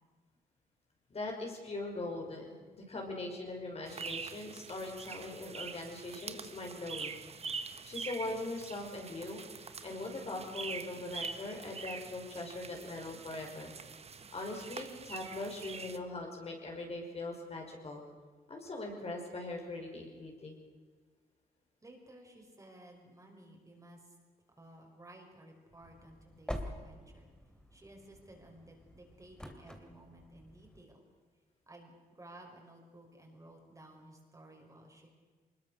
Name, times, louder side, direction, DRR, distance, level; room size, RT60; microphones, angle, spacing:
voice 1, 1.1-7.2 7.4-13.7 14.3-18.0 18.5-20.5, left 2 dB, 45° left, 1 dB, 5.6 m, -41 dB
sound 1, 3.9-16.0, right 5 dB, 45° right, 1.3 m, -45 dB
voice 2, 21.8-24.2 24.6-27.3 27.7-31.0 31.7-35.1, right 1 dB, 20° right, 1 dB, 5.4 m, -55 dB
sound 2, 25.8-30.8, equal, 5° left, 2.9 m, -47 dB
23.5 x 21.5 x 6.6 m, 1.5 s
cardioid pair, 100°, 15 cm